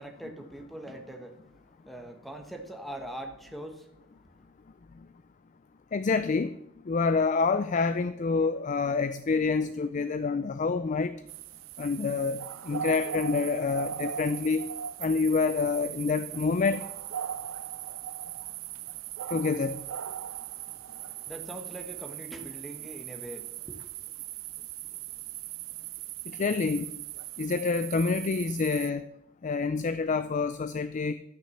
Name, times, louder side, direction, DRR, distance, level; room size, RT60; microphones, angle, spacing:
voice 1, 0.0-4.3 20.6-23.9, right 1 dB, ahead, 5 dB, 1.1 m, -43 dB
voice 2, 5.9-6.5 6.9-11.1 11.8-14.7 15.0-16.8 19.3-19.8 26.3-26.9 27.4-29.1 29.4-31.1, left 4 dB, 35° left, 12 dB, 0.4 m, -27 dB
sound 1, 11.3-28.9, right 10 dB, 70° right, 0.5 m, -39 dB
12.0 x 5.7 x 7.1 m, 0.78 s
head